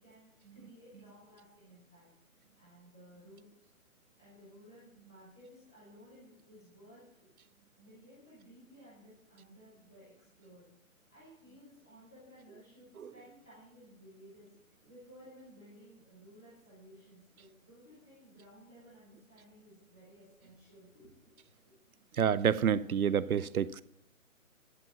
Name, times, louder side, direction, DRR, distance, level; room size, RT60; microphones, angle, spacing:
voice 1, 0.0-2.1 2.6-3.4 4.2-7.3 7.8-10.7 11.1-14.5 14.8-21.4 21.7-21.8, equal, 5° left, 0.5 m, -57 dB
voice 2, 22.2-23.8, right 8 dB, 90° right, 0.7 m, -28 dB
11.0 x 7.9 x 5.7 m
hypercardioid pair, 155°, 42 cm